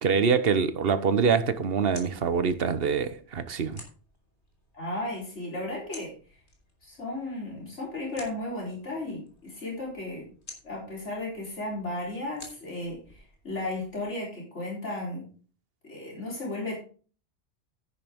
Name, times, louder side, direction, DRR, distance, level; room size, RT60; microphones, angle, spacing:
voice 1, 0.0-3.8, right 6 dB, 55° right, 1.2 m, -25 dB
sound 1, 1.3-14.0, left 2 dB, 70° left, 3.6 m, -53 dB
voice 2, 4.7-6.2 6.8-10.3 10.6-15.3 15.8-16.8, left 2 dB, 90° left, 4.3 m, -35 dB
10.5 x 9.8 x 3.6 m
omnidirectional pair, 1.2 m